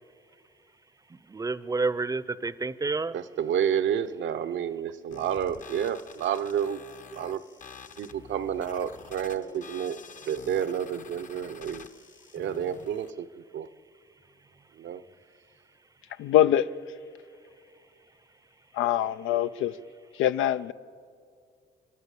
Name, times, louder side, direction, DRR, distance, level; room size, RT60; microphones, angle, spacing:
voice 1, 1.1-3.1, right 3 dB, 15° right, 0.6 m, -29 dB
voice 2, 3.1-6.8 7.1-7.4 8.0-11.8 12.3-13.7 14.8-15.0, right 9 dB, 70° right, 0.8 m, -30 dB
sound 1, 5.1-13.1, left 6 dB, 40° left, 0.8 m, -48 dB
voice 3, 16.2-16.7 18.7-19.8 20.1-20.7, left 11 dB, 85° left, 0.6 m, -24 dB
29.5 x 12.0 x 8.3 m
cardioid pair, 90°, 20 cm